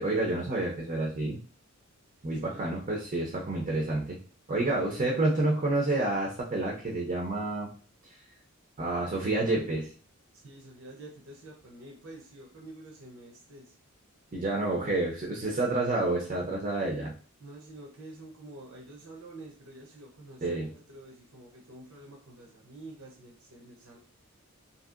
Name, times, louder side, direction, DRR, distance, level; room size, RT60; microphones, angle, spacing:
voice 1, 0.0-1.4 2.2-4.2 4.5-7.7 8.8-9.9 14.3-17.1 20.4-20.7, right 2 dB, 35° right, -1 dB, 0.5 m, -29 dB
voice 2, 10.3-13.7 17.4-24.0, right 2 dB, 70° right, -1 dB, 0.7 m, -48 dB
2.7 x 2.7 x 2.4 m, 0.40 s
head